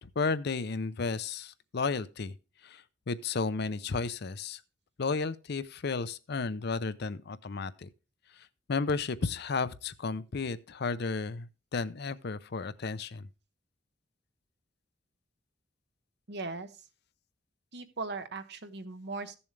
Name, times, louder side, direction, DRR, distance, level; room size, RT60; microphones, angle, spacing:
voice 1, 0.0-2.3 2.6-4.6 5.0-7.9 8.7-13.2, left 4 dB, 55° left, 0.6 m, -33 dB
voice 2, 16.3-16.8 17.7-19.4, right 3 dB, 60° right, 1.1 m, -39 dB
14.5 x 7.1 x 3.3 m
head